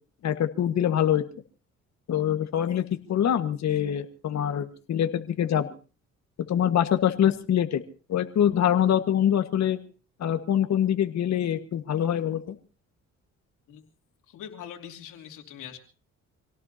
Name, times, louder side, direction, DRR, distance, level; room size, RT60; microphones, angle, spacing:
voice 1, 0.2-1.2 2.1-2.8 3.1-5.7 6.5-7.8 8.1-9.8 10.2-12.5, left 10 dB, 65° left, 8 dB, 1.5 m, -24 dB
voice 2, 14.3-15.8, left 9 dB, 90° left, 3 dB, 3.0 m, -42 dB
26.5 x 17.5 x 2.8 m, 0.37 s
cardioid pair, 90°, 30 cm